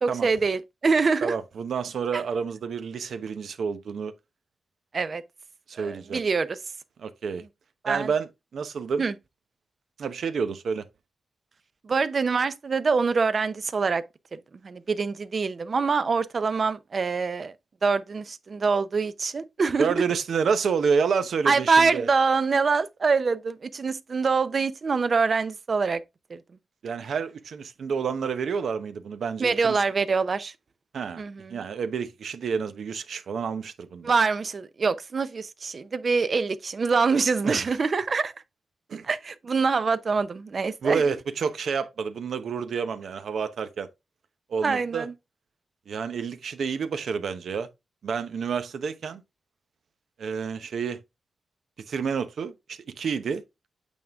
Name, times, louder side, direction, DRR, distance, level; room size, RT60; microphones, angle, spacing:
voice 1, 0.0-1.3 2.1-2.2 4.9-5.2 5.8-6.6 7.8-8.1 9.0-9.1 11.8-14.0 14.6-17.5 17.8-19.9 21.5-26.0 26.3-26.4 29.4-30.5 31.2-31.6 34.0-38.3 39.1-41.0 44.6-45.1, right 4 dB, 50° right, 0.7 m, -25 dB
voice 2, 1.2-4.1 5.7-6.2 7.0-7.4 7.9-9.0 10.0-10.8 19.8-22.1 26.8-29.8 30.9-31.2 31.5-34.1 37.4-37.8 38.9-39.0 40.8-43.9 44.5-45.1 45.9-47.7 48.0-49.2 50.2-51.0 51.9-53.4, right 6 dB, 80° right, 0.9 m, -29 dB
8.4 x 3.7 x 3.6 m
cardioid pair, 90°, 0 cm